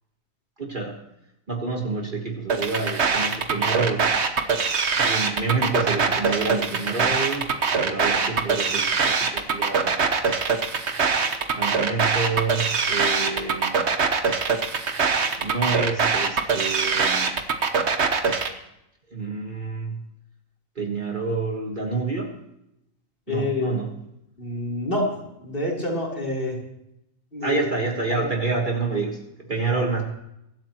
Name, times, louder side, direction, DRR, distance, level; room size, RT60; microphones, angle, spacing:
voice 1, 0.6-0.9 1.5-4.1 5.0-7.5 7.8-9.9 11.6-13.8 15.4-17.4 19.1-20.0 20.7-22.3 23.3-23.9 27.4-30.0, right 4 dB, 35° right, 1 dB, 1.7 m, -28 dB
sound 1, 2.5-18.5, right 5 dB, 55° right, 1.4 m, -23 dB
voice 2, 23.3-23.8 24.4-25.1 25.4-26.6 27.3-27.6 28.1-28.3, left 2 dB, 40° left, -1 dB, 3.9 m, -27 dB
23.5 x 12.5 x 3.0 m, 0.84 s
omnidirectional pair, 1.4 m